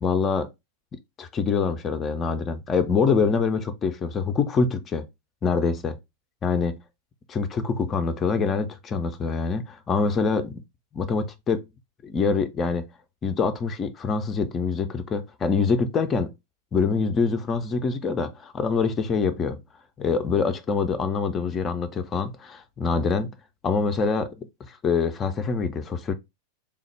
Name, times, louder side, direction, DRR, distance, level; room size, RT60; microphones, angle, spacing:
voice 1, 0.0-0.5 1.2-5.0 5.4-6.0 6.4-6.8 7.3-10.6 10.9-11.6 12.0-12.9 13.2-16.3 16.7-19.6 20.0-23.3 23.6-26.1, left 5 dB, 25° left, 0.3 m, -25 dB
3.3 x 2.0 x 3.0 m
figure-of-eight pair, 90°, 0 cm